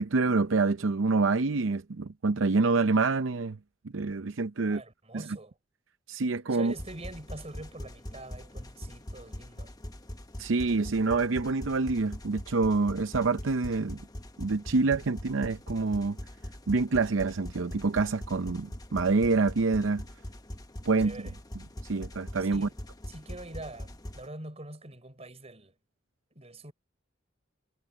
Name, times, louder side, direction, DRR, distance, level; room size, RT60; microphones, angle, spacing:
voice 1, 0.0-3.6 3.9-4.8 5.1-5.2 6.1-6.7 10.4-14.0 14.4-16.2 16.7-20.0 20.9-21.2 21.8-22.7, right 3 dB, 85° right, 0.7 m, -26 dB
voice 2, 4.6-5.6 6.5-9.7 21.0-21.3 22.4-22.7 23.1-25.7 26.3-26.7, right 2 dB, 35° right, 5.0 m, -44 dB
sound 1, 6.7-24.3, left 1 dB, 20° left, 1.2 m, -42 dB
head